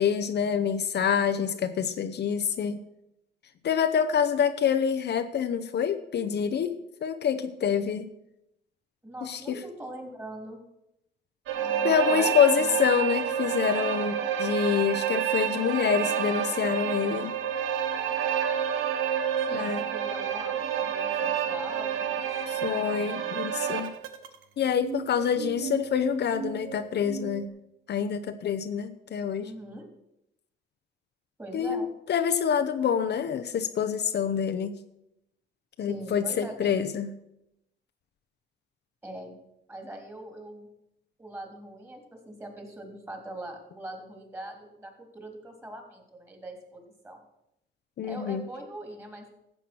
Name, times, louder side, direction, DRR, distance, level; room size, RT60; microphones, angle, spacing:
voice 1, 0.0-2.8 3.6-8.1 9.2-9.6 11.8-17.3 19.5-19.8 22.5-23.9 24.6-27.5 27.9-29.5 31.5-34.8 35.8-37.1 48.0-48.4, left 7 dB, 60° left, 7 dB, 0.8 m, -26 dB
voice 2, 9.0-10.6 11.5-12.8 19.4-22.8 29.4-29.9 31.4-31.9 35.8-36.8 39.0-39.4 39.7-40.7 41.2-47.2 48.0-49.3, right 1 dB, 15° right, 3 dB, 3.4 m, -42 dB
sound 1, 11.5-24.3 24.8-27.5, right 8 dB, 90° right, 1.1 m, -29 dB
13.5 x 7.9 x 6.2 m, 0.84 s
cardioid pair, 90°, 20 cm